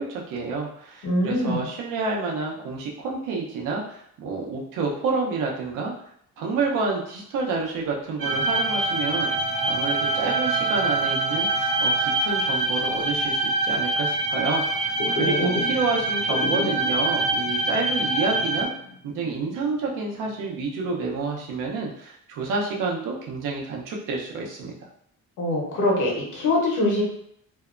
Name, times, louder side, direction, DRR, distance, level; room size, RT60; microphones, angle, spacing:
voice 1, 0.0-5.9 6.4-9.3 9.7-18.7 19.1-24.7, right 4 dB, 80° right, -1 dB, 0.7 m, -29 dB
voice 2, 1.0-1.6 15.1-15.6 25.4-27.0, left 1 dB, 70° left, -2 dB, 1.0 m, -24 dB
sound 1, 8.2-12.7, right 9 dB, 10° right, 0.5 m, -32 dB
sound 2, 8.2-18.7, right 2 dB, 40° right, 0.8 m, -25 dB
sound 3, 15.0-17.0 17.4-17.5 17.9-18.0 18.5-19.9 20.3-20.9, left 1 dB, 40° left, 0.5 m, -32 dB
2.7 x 2.1 x 2.4 m, 0.71 s
cardioid pair, 155°, 31 cm